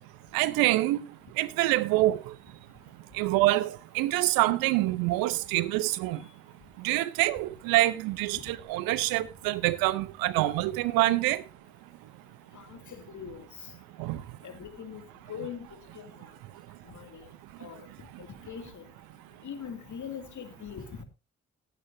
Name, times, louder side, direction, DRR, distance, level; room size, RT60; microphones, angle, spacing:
voice 1, 0.3-1.0 1.4-2.2 3.2-6.2 6.8-11.4 14.0-14.2, right 17 dB, 80° right, 0.8 m, -26 dB
voice 2, 12.5-13.7 14.4-15.0 15.3-15.7 15.9-16.1 16.9-17.3 17.6-17.9 18.2-18.8 19.4-21.0, left 7 dB, 60° left, 2.4 m, -41 dB
19.0 x 9.1 x 2.6 m
hypercardioid pair, 40°, 35 cm